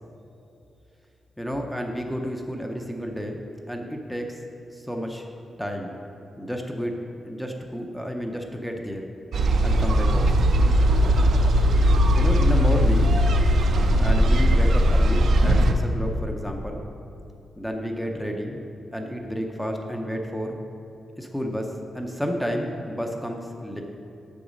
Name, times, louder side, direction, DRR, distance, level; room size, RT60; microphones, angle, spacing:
voice 1, 1.4-3.4 3.7-4.4 4.7-5.3 5.6-5.9 6.4-9.1 9.6-10.5 12.2-13.2 14.0-16.8 17.6-18.6 18.9-20.6 21.2-23.8, equal, ahead, 2 dB, 0.5 m, -31 dB
sound 1, 9.3-15.7, equal, 60° right, 0.5 m, -19 dB
7.1 x 7.0 x 5.1 m, 2.8 s
wide cardioid pair, 170°, 0 cm